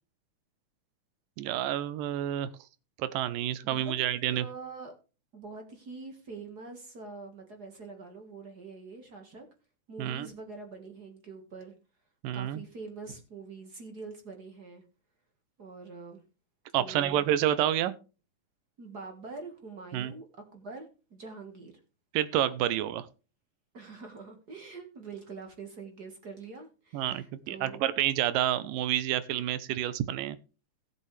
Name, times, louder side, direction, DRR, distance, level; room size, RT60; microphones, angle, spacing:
voice 1, 1.4-2.5 3.0-4.5 10.0-10.3 12.2-12.6 16.7-17.9 19.9-20.1 22.1-23.1 26.9-30.4, right 12 dB, 85° right, 15 dB, 2.5 m, -29 dB
voice 2, 3.6-3.9 4.3-4.9 5.3-9.4 9.9-11.7 12.3-14.8 15.6-16.2 16.8-17.2 18.8-20.2 20.5-21.7 23.7-27.8, right 4 dB, 40° right, 4 dB, 1.6 m, -44 dB
17.0 x 7.2 x 3.3 m, 0.32 s
omnidirectional pair, 3.8 m